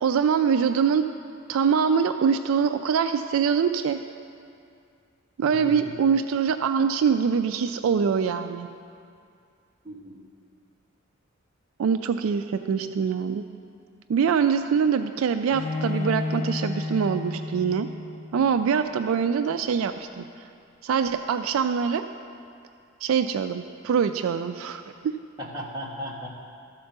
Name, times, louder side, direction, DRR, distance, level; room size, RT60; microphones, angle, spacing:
voice 1, 0.0-1.1 1.5-4.0 5.4-8.7 11.8-13.4 14.1-17.9 18.3-20.2 20.8-22.1 23.0-25.1, right 6 dB, 75° right, 9 dB, 0.3 m, -24 dB
voice 2, 5.5-5.9 9.8-10.2 25.4-26.3, equal, 20° right, -4 dB, 1.4 m, -36 dB
Bowed string instrument, 15.5-18.5, left 3 dB, 30° left, 0.5 m, -31 dB
13.0 x 4.4 x 6.6 m, 2.4 s
head